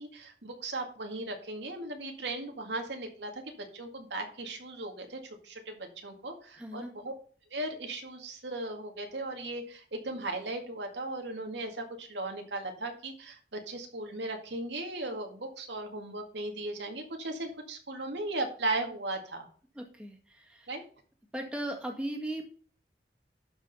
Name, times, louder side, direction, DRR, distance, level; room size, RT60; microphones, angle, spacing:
voice 1, 0.0-3.3 3.7-7.1 7.5-13.4 13.7-19.5 20.7-20.8, right 2 dB, 80° right, 3 dB, 2.0 m, -37 dB
voice 2, 6.6-6.9 19.8-20.7 21.3-22.5, right 1 dB, 5° right, 0 dB, 1.8 m, -37 dB
12.0 x 5.0 x 5.4 m, 0.42 s
head